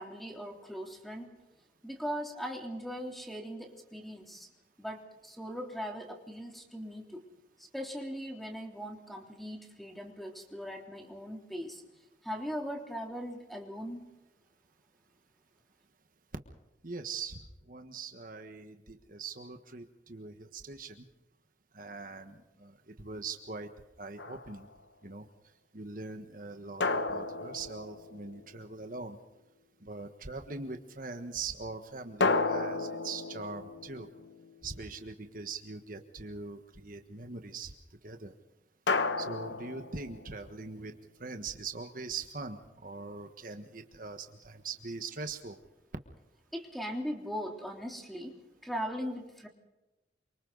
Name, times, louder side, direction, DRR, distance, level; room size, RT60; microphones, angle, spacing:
voice 1, 0.0-1.3 1.8-4.5 4.8-7.2 7.7-11.8 12.2-14.1 46.5-48.4 48.6-49.5, equal, ahead, 2 dB, 3.4 m, -39 dB
voice 2, 16.8-17.4 17.7-21.0 21.7-23.7 24.0-24.7 25.0-25.3 25.7-29.2 29.8-34.1 34.6-37.7 38.0-38.3 39.2-40.9 41.2-45.6, right 4 dB, 50° right, 6 dB, 1.4 m, -42 dB
sound 1, 24.2-24.8 26.8-28.6 32.2-34.8 38.9-40.5, left 3 dB, 75° left, 1.3 m, -33 dB
28.0 x 25.0 x 4.0 m, 1.0 s
head